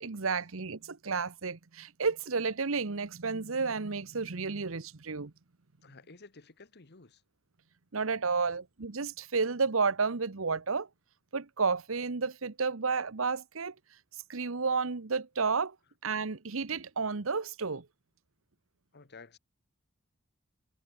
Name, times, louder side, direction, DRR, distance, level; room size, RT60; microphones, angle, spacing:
voice 1, 0.0-5.3 7.9-10.9 11.3-13.7 14.3-15.7 16.0-17.9, right 4 dB, 70° right, 1.0 m, -31 dB
voice 2, 5.8-7.2 8.4-8.5 18.9-19.4, left 3 dB, 50° left, 1.5 m, -53 dB
head